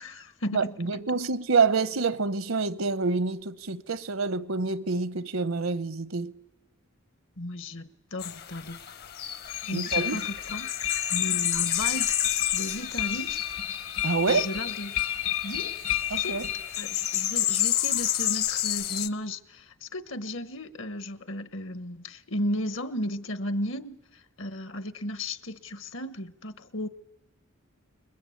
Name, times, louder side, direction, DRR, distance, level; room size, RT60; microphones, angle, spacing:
voice 1, 0.0-0.8 7.4-8.8 9.6-10.7 11.1-12.1 12.5-13.4 14.2-15.0 15.4-15.7 16.1-16.4 16.8-26.9, left 1 dB, 65° left, 1.1 m, -34 dB
voice 2, 0.5-6.3 9.7-10.2 14.0-14.5 16.1-16.5, right 4 dB, 80° right, 0.9 m, -27 dB
sound 1, 8.2-19.1, left 11 dB, 50° left, 0.9 m, -30 dB
sound 2, 9.5-17.2, left 11 dB, 80° left, 1.3 m, -32 dB
28.5 x 21.5 x 8.5 m
head